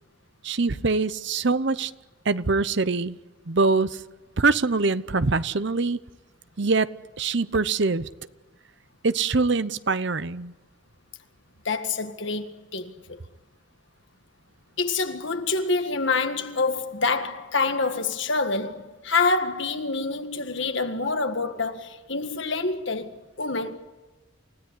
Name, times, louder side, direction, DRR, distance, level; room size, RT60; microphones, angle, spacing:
voice 1, 0.4-1.9 2.2-3.2 3.5-4.0 4.4-6.0 6.6-8.1 9.0-10.5, right 3 dB, 55° right, 0.8 m, -24 dB
voice 2, 11.7-13.2 14.8-23.8, left 3 dB, 60° left, 1.8 m, -27 dB
29.0 x 17.0 x 9.9 m
head